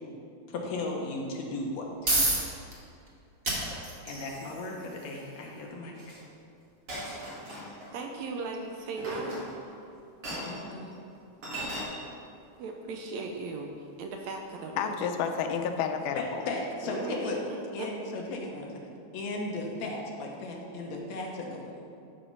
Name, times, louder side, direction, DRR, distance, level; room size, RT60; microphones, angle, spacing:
voice 1, 0.5-2.2 4.1-6.2 10.3-10.9 16.2-17.5 17.7-18.8 19.1-21.9, left 2 dB, 70° left, 0 dB, 2.1 m, -36 dB
sound 1, 1.6-16.4, right 1 dB, 35° right, 0.9 m, -38 dB
Chink clink, 6.0-6.2 6.9-7.9 9.0-9.7 10.2-10.6 11.4-11.8, right 1 dB, 55° right, 2.7 m, -37 dB
voice 2, 7.9-9.4 12.6-14.8 16.8-17.9, right 3 dB, 75° right, 3 dB, 1.8 m, -37 dB
voice 3, 14.8-16.4, left 7 dB, 85° left, 6 dB, 2.2 m, -30 dB
12.0 x 4.3 x 5.3 m, 2.5 s
omnidirectional pair, 3.5 m